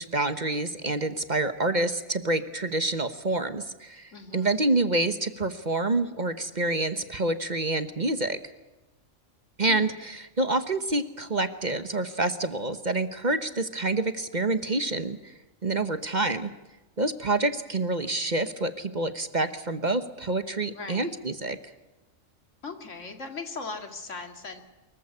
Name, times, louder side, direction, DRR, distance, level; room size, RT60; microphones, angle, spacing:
voice 1, 0.0-8.4 9.6-15.3 15.6-16.5 17.0-21.6, right 2 dB, 40° right, 10 dB, 1.2 m, -27 dB
voice 2, 4.1-4.6 9.7-9.9 20.7-21.1 22.6-24.6, left 4 dB, 70° left, 6 dB, 2.6 m, -39 dB
23.5 x 15.0 x 9.8 m, 1.1 s
omnidirectional pair, 1.3 m